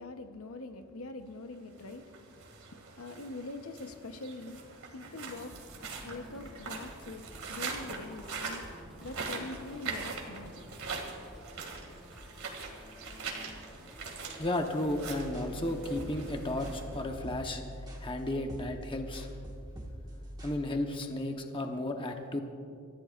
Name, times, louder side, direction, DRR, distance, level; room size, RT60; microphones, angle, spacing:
voice 1, 0.0-4.6 4.9-5.6 6.0-8.7 9.0-10.7, left 2 dB, 75° left, 0.9 m, -44 dB
sound 1, 1.7-17.4, right 4 dB, 75° right, 2.2 m, -43 dB
sound 2, 5.2-16.8, equal, ahead, 1.5 m, -52 dB
voice 2, 14.4-17.6 18.0-19.3 20.4-22.4, left 1 dB, 25° left, 1.0 m, -33 dB
sound 3, 14.9-20.6, equal, 20° right, 1.6 m, -44 dB
27.5 x 14.5 x 2.5 m
head